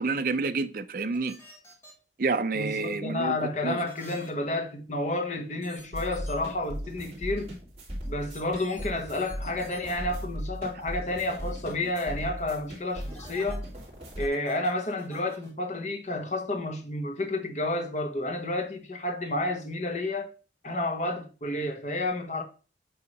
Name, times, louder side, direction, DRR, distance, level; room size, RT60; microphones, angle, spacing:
voice 1, 0.0-1.4 2.2-3.9, right 4 dB, 50° right, 0.5 m, -29 dB
sound 1, 1.1-1.9 3.9-4.3 5.6-5.8 6.1-6.3 8.3-8.9 9.1-9.8 11.3-12.0 12.9-13.6 14.2-15.5, equal, 15° left, 1.6 m, -49 dB
voice 2, 2.5-7.5 8.1-13.6 14.2-20.3 20.6-22.4, left 2 dB, 40° left, 1.1 m, -30 dB
sound 2, 5.9-14.3, equal, 35° right, 2.4 m, -38 dB
7.9 x 2.8 x 5.4 m
head